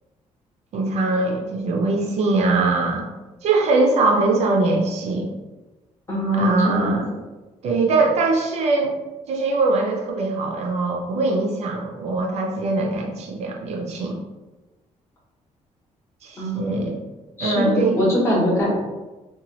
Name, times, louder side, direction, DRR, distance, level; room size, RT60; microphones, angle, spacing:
voice 1, 0.7-3.1 3.4-5.3 6.3-7.1 7.6-8.9 9.3-14.2 16.2-17.0 17.4-18.0, right 3 dB, 60° right, 1 dB, 0.4 m, -22 dB
voice 2, 6.1-7.0 16.4-16.8 17.4-18.7, equal, 20° left, -5 dB, 0.8 m, -22 dB
2.8 x 2.2 x 2.9 m, 1.1 s
cardioid pair, 180°, 13 cm